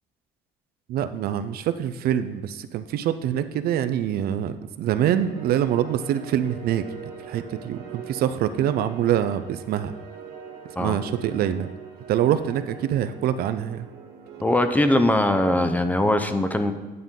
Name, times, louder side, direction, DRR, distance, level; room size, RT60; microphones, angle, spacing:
voice 1, 0.9-6.8 7.2-9.9 10.8-11.7 12.1-13.9, right 10 dB, 65° right, 11 dB, 0.4 m, -25 dB
sound 1, 5.2-15.6, right 6 dB, 80° right, 1.6 m, -42 dB
voice 2, 14.4-16.7, left 1 dB, 10° left, 8 dB, 0.5 m, -21 dB
9.6 x 5.3 x 3.7 m, 1.2 s
cardioid pair, 110°, 17 cm